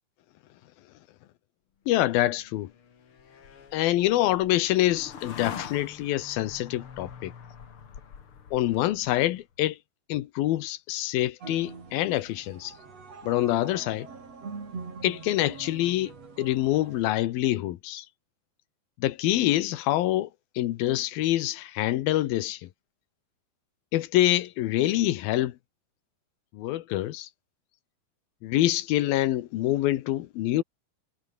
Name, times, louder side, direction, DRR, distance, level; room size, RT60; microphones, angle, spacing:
voice 1, 1.9-2.7 3.7-7.3 8.5-9.8 10.1-12.7 13.2-14.1 15.0-18.1 19.0-20.3 20.6-22.7 23.9-25.6 26.5-27.3 28.4-30.6, left 15 dB, 70° left, 2.8 m, -26 dB
sound 1, 2.0-9.4, left 7 dB, 40° left, 2.4 m, -45 dB
sound 2, 11.4-17.0, right 4 dB, 40° right, 5.3 m, -43 dB
omnidirectional pair, 4.6 m